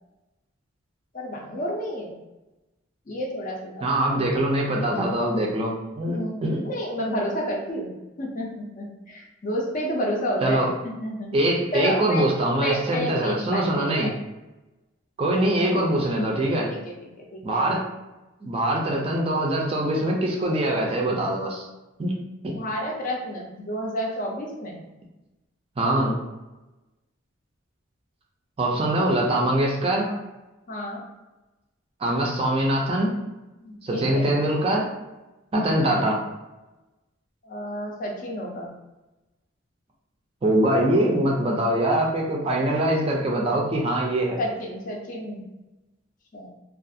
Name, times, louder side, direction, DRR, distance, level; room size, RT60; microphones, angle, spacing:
voice 1, 1.1-2.2 3.1-3.9 6.1-7.9 8.2-11.3 11.7-12.3 12.6-14.1 16.7-17.7 22.5-24.8 28.7-28.8 30.0-30.2 30.7-31.0 33.6-34.3 35.6-35.9 37.4-38.7 44.4-45.4 46.3-46.5, equal, 40° left, -1 dB, 0.4 m, -30 dB
voice 2, 3.8-6.6 10.4-10.7 11.3-14.1 15.2-16.7 17.4-17.8 18.4-21.7 22.0-22.2 22.4-22.6 25.8-26.2 28.6-30.1 32.0-33.1 33.8-34.9 35.5-36.2 40.4-44.4, right 1 dB, 30° right, -1 dB, 0.4 m, -23 dB
2.4 x 2.4 x 2.6 m, 1.0 s
head